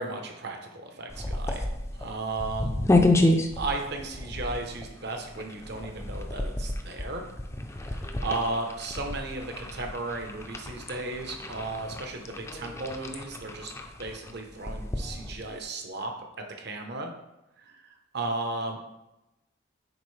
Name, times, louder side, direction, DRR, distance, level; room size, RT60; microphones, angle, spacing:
voice 1, 0.0-1.7 1.9-2.8 3.6-7.3 7.8-13.7 14.0-17.1 17.6-18.8, right 2 dB, 55° right, 3 dB, 0.9 m, -35 dB
sound 1, 1.1-15.6, left 2 dB, 15° left, 0.5 m, -30 dB
10.0 x 4.2 x 3.2 m, 0.94 s
head